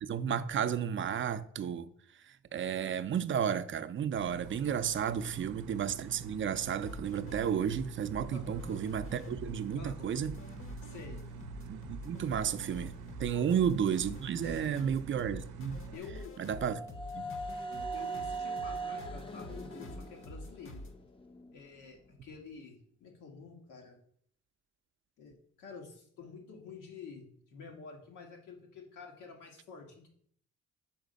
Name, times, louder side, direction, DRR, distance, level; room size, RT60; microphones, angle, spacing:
voice 1, 0.0-1.9 2.3-10.4 11.6-12.9 13.2-15.8 16.4-16.8 17.1-17.3, right 8 dB, 40° right, 0.5 m, -32 dB
sound 1, 4.2-16.0, right 5 dB, 85° right, 0.6 m, -47 dB
voice 2, 5.1-5.5 8.3-8.8 9.8-10.3 10.8-11.2 13.3-13.5 14.4-14.9 15.9-16.3 17.9-20.8 21.5-24.0 25.2-30.1, left 5 dB, 90° left, 1.6 m, -49 dB
sound 2, 6.8-20.9, left 1 dB, 45° left, 0.9 m, -46 dB
sound 3, 15.7-21.6, right 3 dB, 20° left, 0.5 m, -41 dB
5.8 x 4.5 x 5.1 m
cardioid pair, 90°, 30 cm